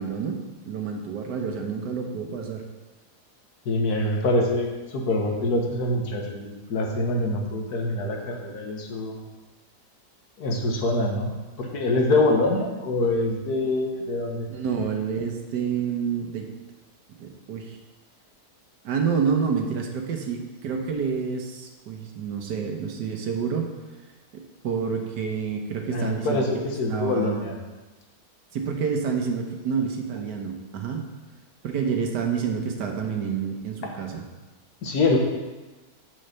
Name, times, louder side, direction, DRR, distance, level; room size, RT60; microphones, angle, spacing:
voice 1, 0.0-2.6 14.5-16.5 17.2-17.8 18.8-23.7 24.3-27.5 28.5-31.1 31.6-34.2, right 6 dB, 85° right, 2 dB, 1.6 m, -28 dB
voice 2, 3.6-9.2 10.4-11.3 11.6-14.5 25.9-27.5 33.8-33.9 34.8-35.2, left 2 dB, 70° left, 1 dB, 1.7 m, -25 dB
6.5 x 5.6 x 6.7 m, 1.2 s
omnidirectional pair, 1.8 m